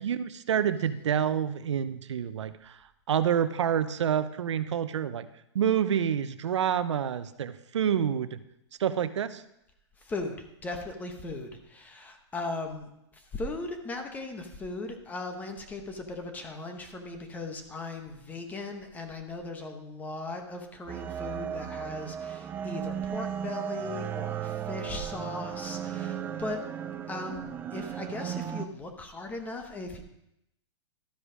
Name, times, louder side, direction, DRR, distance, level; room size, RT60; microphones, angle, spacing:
voice 1, 0.0-2.8 3.1-5.3 5.5-8.4 8.8-9.4, right 9 dB, 90° right, 13 dB, 0.7 m, -28 dB
voice 2, 10.0-26.6 27.1-30.0, left 2 dB, 10° left, 5 dB, 0.9 m, -38 dB
sound 1, 20.9-28.7, right 9 dB, 15° right, 0.3 m, -35 dB
12.5 x 5.1 x 4.9 m, 0.82 s
hypercardioid pair, 150°, 15 cm